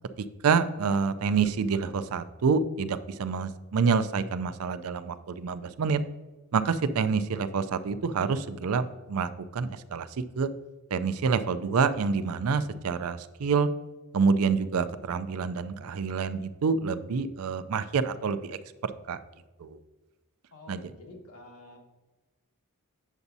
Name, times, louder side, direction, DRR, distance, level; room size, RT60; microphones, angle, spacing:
voice 1, 0.4-6.0 6.5-10.1 10.4-10.5 10.9-13.7 14.1-18.6 19.1-19.2 19.6-19.8 20.7-20.8, right 5 dB, 70° right, 13 dB, 0.4 m, -27 dB
voice 2, 20.5-21.8, left 1 dB, 85° left, 1 dB, 1.5 m, -48 dB
8.2 x 7.0 x 2.7 m, 1.2 s
head